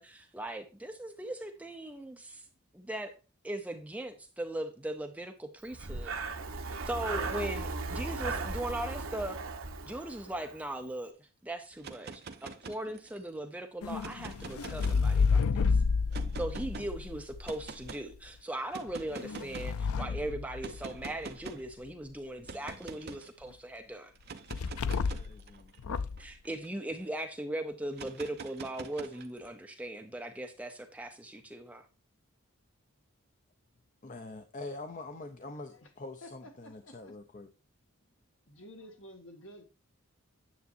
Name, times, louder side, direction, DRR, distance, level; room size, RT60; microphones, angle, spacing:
voice 1, 0.0-2.5 2.7-3.1 3.4-6.1 6.9-9.4 9.9-15.8 16.4-24.1 26.2-31.8, right 1 dB, 5° right, 0.6 m, -39 dB
Breathing, 5.7-10.6, right 3 dB, 70° right, 1.0 m, -37 dB
sound 1, 11.7-13.3 13.9-15.4 16.1-16.9 17.4-18.0 18.7-19.8 20.6-21.7 22.5-23.3 24.2-27.0 27.9-29.5, right 4 dB, 45° right, 0.7 m, -45 dB
sound 2, 13.8-17.9 18.9-21.2 24.5-25.4 25.8-26.3, left 5 dB, 80° left, 0.4 m, -30 dB
voice 2, 24.9-25.7 34.0-37.5, left 2 dB, 35° left, 0.6 m, -45 dB
voice 3, 36.2-37.1 38.5-39.6, left 1 dB, 60° left, 1.7 m, -51 dB
9.5 x 7.2 x 2.6 m
head